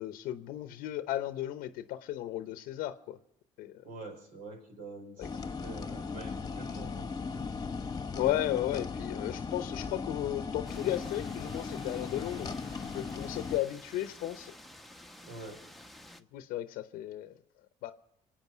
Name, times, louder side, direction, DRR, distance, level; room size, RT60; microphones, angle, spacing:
voice 1, 0.0-3.2 3.6-3.8 5.2-5.3 8.1-12.5 12.9-14.5 16.3-17.3 17.8-17.9, left 13 dB, 75° left, 11 dB, 0.8 m, -34 dB
voice 2, 3.8-7.1 7.3-7.5 15.2-15.6, right 2 dB, 70° right, 4 dB, 5.0 m, -46 dB
sound 1, 5.2-13.6, left 5 dB, 25° left, 1.2 m, -38 dB
sound 2, 10.7-16.2, left 1 dB, ahead, 1.0 m, -51 dB
25.5 x 8.8 x 6.1 m, 0.79 s
supercardioid pair, 70°, 15 cm